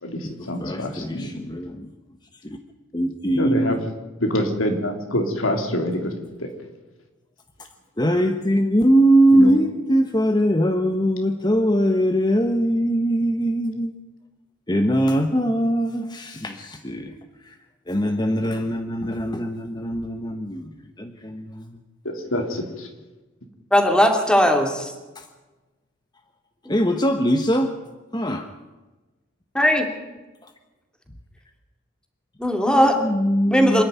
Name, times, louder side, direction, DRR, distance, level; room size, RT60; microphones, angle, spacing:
voice 1, 0.0-1.3 3.3-3.8 4.2-6.1 6.4-6.5 9.3-9.5 22.1-22.9, left 1 dB, 85° left, 3.4 m, -25 dB
voice 2, 0.6-1.9 2.4-2.6 2.9-3.8 8.0-13.9 14.7-17.1 17.5-17.6 17.9-21.8 25.1-25.3 26.7-27.7 28.1-28.5 32.6-33.8, equal, 20° left, 1.2 m, -21 dB
voice 3, 23.7-24.9 29.5-29.9 32.4-32.9 33.5-33.8, equal, 5° left, 2.6 m, -18 dB
26.5 x 11.0 x 9.4 m
head